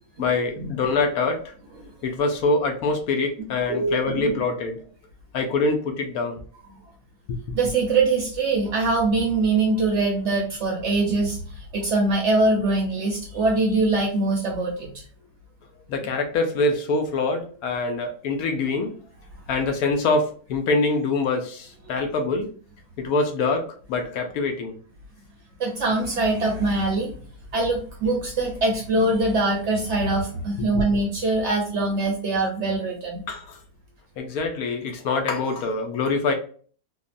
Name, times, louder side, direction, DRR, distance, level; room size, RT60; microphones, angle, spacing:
voice 1, 0.2-1.4 2.0-4.8 5.3-6.4 7.3-7.4 15.9-18.9 19.5-22.5 23.0-24.8 33.3-33.6 34.2-36.3, left 3 dB, 70° left, 1.0 m, -24 dB
voice 2, 3.7-4.4 7.5-14.9 25.6-27.1 27.5-33.2, right 2 dB, 65° right, 0.7 m, -23 dB
3.6 x 2.0 x 2.5 m
omnidirectional pair, 1.7 m